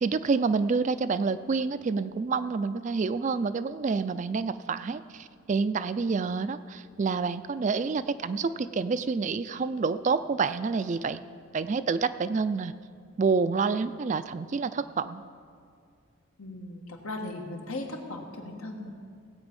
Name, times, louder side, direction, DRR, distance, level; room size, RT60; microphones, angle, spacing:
voice 1, 0.0-11.2 11.5-12.7 13.2-15.2, right 4 dB, 35° right, 13 dB, 0.3 m, -28 dB
voice 2, 16.4-18.9, left 2 dB, 90° left, 2 dB, 1.6 m, -37 dB
17.5 x 8.1 x 5.3 m, 2.2 s
head